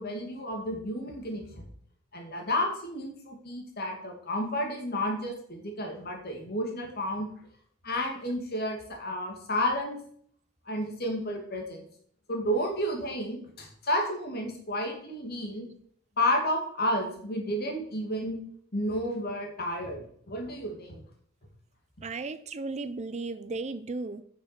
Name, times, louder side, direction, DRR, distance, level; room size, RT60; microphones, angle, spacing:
voice 1, 0.0-1.7 2.1-7.3 7.8-10.0 10.7-11.8 12.3-15.7 16.2-18.4 18.7-21.0, left 1 dB, 50° left, 2 dB, 2.4 m, -31 dB
voice 2, 22.0-24.2, right 3 dB, 35° right, 13 dB, 0.5 m, -35 dB
8.6 x 6.1 x 5.9 m, 0.62 s
head